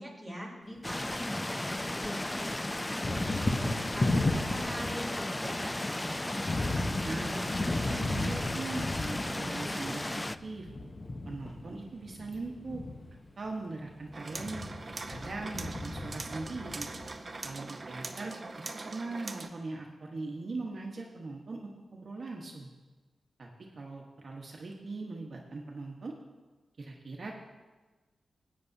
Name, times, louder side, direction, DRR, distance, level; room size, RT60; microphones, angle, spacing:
voice 1, 0.0-3.6 3.9-5.8, equal, ahead, -4 dB, 3.3 m, -43 dB
Thunder, 0.8-2.0 2.3-17.5, left 2 dB, 35° left, 0.9 m, -35 dB
sound 1, 0.8-10.4, left 1 dB, 15° left, 0.3 m, -35 dB
voice 2, 7.0-7.6 7.9-10.7 11.2-12.8 13.4-14.7 15.1-16.9 17.4-18.4 18.8-22.7 23.4-23.5 23.7-26.1 26.8-27.3, right 3 dB, 55° right, -1 dB, 1.1 m, -40 dB
sound 2, 14.1-19.5, right 3 dB, 35° right, 0.7 m, -42 dB
16.0 x 8.6 x 2.7 m, 1.3 s
wide cardioid pair, 90°, 0 cm